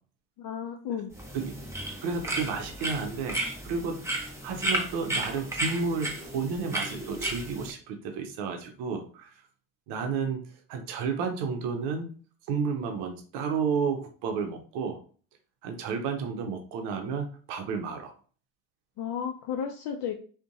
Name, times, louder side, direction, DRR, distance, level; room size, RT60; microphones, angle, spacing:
voice 1, 0.4-1.1 19.0-20.2, left 8 dB, 60° left, 2 dB, 0.5 m, -33 dB
sound 1, 1.1-7.7, right 1 dB, 5° right, 0.7 m, -33 dB
voice 2, 2.0-3.4 3.6-4.0 4.4-9.3 9.9-12.1 12.5-15.0 15.6-18.1, right 5 dB, 75° right, 4 dB, 0.6 m, -31 dB
2.5 x 2.2 x 2.5 m, 0.41 s
hypercardioid pair, 60°, 41 cm